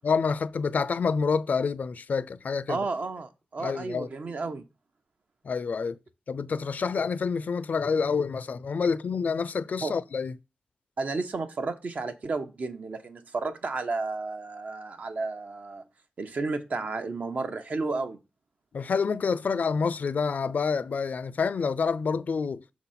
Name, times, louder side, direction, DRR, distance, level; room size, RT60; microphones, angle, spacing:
voice 1, 0.0-2.8 3.6-4.1 5.4-6.0 6.3-10.3 18.7-22.6, left 5 dB, 60° left, 0.4 m, -27 dB
voice 2, 2.7-4.6 9.8-10.0 11.0-15.8 16.2-18.2, right 3 dB, 55° right, 0.9 m, -32 dB
6.3 x 3.9 x 5.7 m
wide cardioid pair, 130°, 3 cm